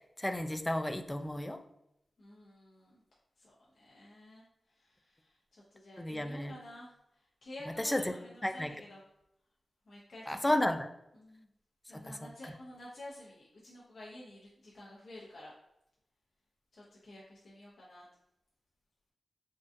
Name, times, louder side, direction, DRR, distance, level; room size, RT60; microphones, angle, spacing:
voice 1, 0.2-1.6 6.0-6.5 7.8-8.1 8.4-8.7 10.3-10.9, left 1 dB, 15° left, 6 dB, 0.3 m, -32 dB
voice 2, 2.2-3.0 3.4-9.0 9.9-10.6 11.1-11.5 11.9-15.5 16.7-18.1, left 1 dB, 75° left, -5 dB, 0.6 m, -51 dB
3.7 x 2.4 x 2.5 m, 0.81 s
cardioid pair, 50°, 0 cm